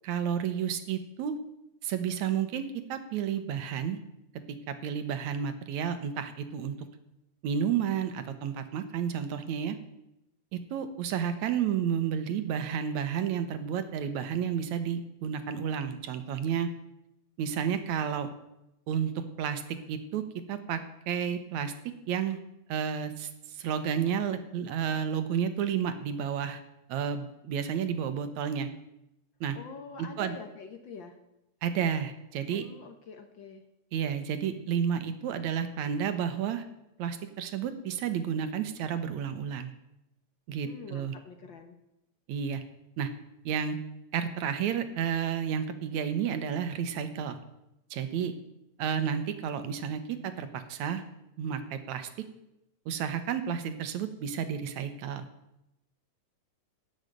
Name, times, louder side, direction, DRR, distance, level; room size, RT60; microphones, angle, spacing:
voice 1, 0.1-1.4 1.8-4.0 4.5-6.9 7.4-9.8 10.5-16.7 17.4-18.3 18.9-20.2 20.5-20.8 21.1-21.7 22.1-22.4 22.7-26.6 26.9-28.7 29.4-29.6 30.0-30.4 31.6-32.7 33.9-36.7 37.0-39.7 40.5-41.2 42.3-42.6 43.0-43.1 43.5-43.8 44.1-47.4 47.9-48.3 48.8-51.0 51.4-52.1 52.9-55.3, right 8 dB, 75° right, 10 dB, 2.4 m, -31 dB
voice 2, 29.5-31.2 32.5-33.6 40.6-41.8, left 5 dB, 65° left, 6 dB, 1.2 m, -46 dB
16.0 x 6.7 x 9.0 m, 0.88 s
omnidirectional pair, 3.4 m